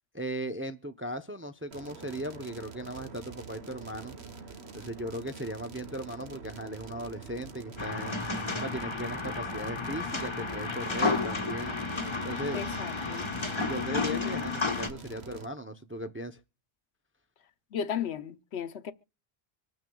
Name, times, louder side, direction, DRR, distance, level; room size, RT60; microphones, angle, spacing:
voice 1, 0.1-4.1 4.7-8.1 8.6-11.8 12.2-12.6 13.6-16.4, right 1 dB, 15° right, 0.6 m, -37 dB
sound 1, 1.7-15.5, right 4 dB, 80° right, 1.5 m, -45 dB
sound 2, 7.8-14.9, left 4 dB, 25° left, 1.2 m, -32 dB
voice 2, 12.5-13.3 17.7-18.9, left 8 dB, 85° left, 1.1 m, -35 dB
25.5 x 9.4 x 2.3 m
omnidirectional pair, 1.1 m